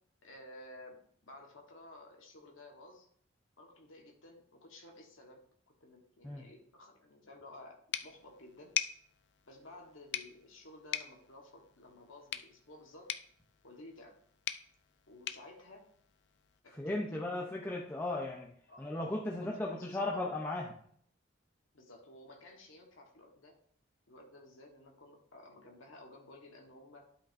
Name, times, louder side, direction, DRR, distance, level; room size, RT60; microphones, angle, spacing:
voice 1, 0.2-3.1 3.6-5.4 5.8-8.7 9.5-13.1 13.6-14.1 15.1-15.8 16.6-17.4 18.7-18.9 19.3-20.2 21.7-23.6 24.1-27.1, left 1 dB, 75° left, 1 dB, 1.3 m, -54 dB
sound 1, 7.9-16.6, left 11 dB, 55° left, 0.4 m, -43 dB
voice 2, 16.7-18.5 18.8-20.7, left 2 dB, 10° left, -2 dB, 0.6 m, -36 dB
12.0 x 5.1 x 2.6 m, 0.63 s
head